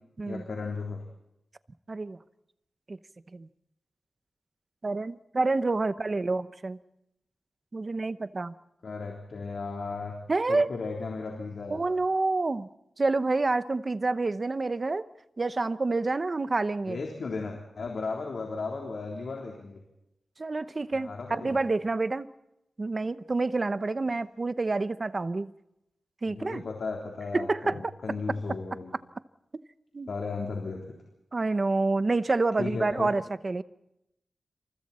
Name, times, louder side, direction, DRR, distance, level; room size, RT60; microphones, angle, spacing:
voice 1, 0.2-1.0 8.8-10.1 10.5-12.0 16.9-19.8 20.9-21.6 26.3-28.9 30.1-30.8 32.6-33.1, left 4 dB, 65° left, 0 dB, 3.6 m, -35 dB
voice 2, 1.9-2.2 2.9-3.0 3.3-3.5 4.8-6.8 7.7-8.5 10.3-10.7 11.7-12.7 13.0-15.1 15.4-17.0 20.4-22.3 22.8-25.5 26.2-26.6 27.3-27.9 29.9-30.1 31.3-33.6, right 3 dB, 30° right, 13 dB, 0.8 m, -28 dB
28.5 x 27.5 x 4.3 m, 0.85 s
wide cardioid pair, 165°, 0 cm